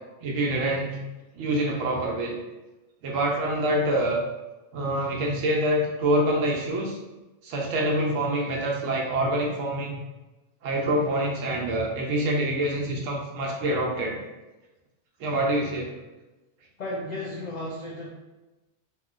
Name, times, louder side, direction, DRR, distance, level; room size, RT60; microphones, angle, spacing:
voice 1, 0.2-1.0 1.3-2.4 3.0-4.2 4.7-7.0 7.4-10.0 10.6-14.2 15.2-15.9, right 1 dB, 90° right, -1 dB, 1.0 m, -26 dB
voice 2, 16.8-18.1, left 1 dB, 90° left, -4 dB, 0.3 m, -34 dB
2.9 x 2.6 x 2.4 m, 1.1 s
omnidirectional pair, 1.3 m